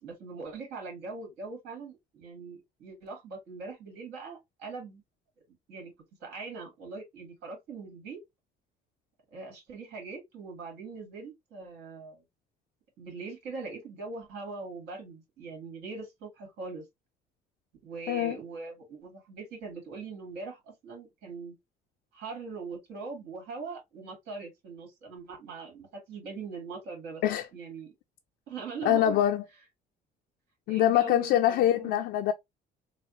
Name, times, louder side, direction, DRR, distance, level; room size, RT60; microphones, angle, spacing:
voice 1, 0.0-5.0 5.7-5.9 6.2-8.2 9.3-12.2 13.0-16.8 17.8-21.6 22.1-27.2 27.5-27.9 28.5-29.2 30.7-32.0, right 4 dB, 80° right, 2.3 m, -41 dB
voice 2, 28.8-29.4 30.7-32.3, left 12 dB, 80° left, 0.4 m, -24 dB
4.1 x 2.5 x 2.6 m
cardioid pair, 110°, 17 cm